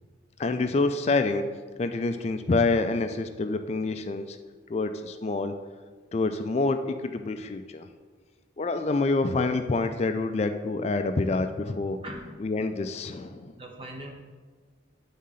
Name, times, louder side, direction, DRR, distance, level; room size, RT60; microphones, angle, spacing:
voice 1, 0.4-1.4 1.8-4.4 4.7-5.5 6.1-7.9 8.6-12.0 12.4-13.5, left 3 dB, 35° left, 8 dB, 0.3 m, -27 dB
voice 2, 12.0-12.5 13.0-13.2 13.6-14.2, right 1 dB, 25° right, 2 dB, 0.9 m, -41 dB
9.0 x 3.7 x 5.6 m, 1.5 s
head